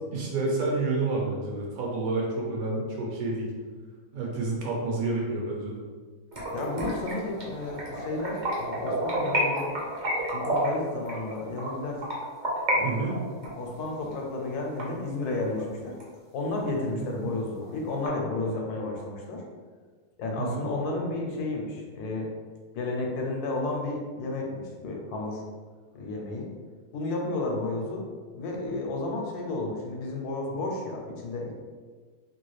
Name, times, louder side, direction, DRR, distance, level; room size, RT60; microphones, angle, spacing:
voice 1, 0.1-3.5 4.1-5.8 12.8-13.2 16.9-17.1 20.4-20.7, right 3 dB, 70° right, -2 dB, 1.1 m, -29 dB
sound 1, 6.3-12.8 13.1-15.6 16.0-16.1 16.5-16.6 17.0-17.1 17.3-18.1, right 1 dB, 45° right, 0.5 m, -30 dB
voice 2, 6.5-9.7 10.3-12.0 12.7-13.0 13.6-16.0 16.3-19.4 20.2-22.3 22.7-25.4 25.9-26.5 26.9-28.1 28.3-31.5, left 2 dB, 80° left, 0 dB, 1.1 m, -32 dB
2.9 x 2.3 x 3.1 m, 1.5 s
omnidirectional pair, 1.6 m